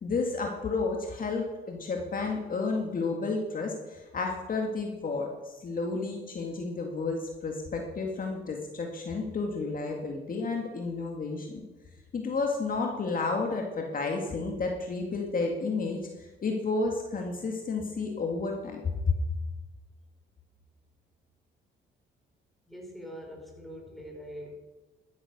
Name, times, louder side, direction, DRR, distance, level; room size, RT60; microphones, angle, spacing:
voice 1, 0.0-11.5 12.1-18.8 19.1-19.2, left 3 dB, 45° left, 2 dB, 2.0 m, -31 dB
voice 2, 22.7-24.6, equal, ahead, 0 dB, 4.4 m, -43 dB
12.0 x 9.6 x 6.6 m, 1.2 s
cardioid pair, 90°, 20 cm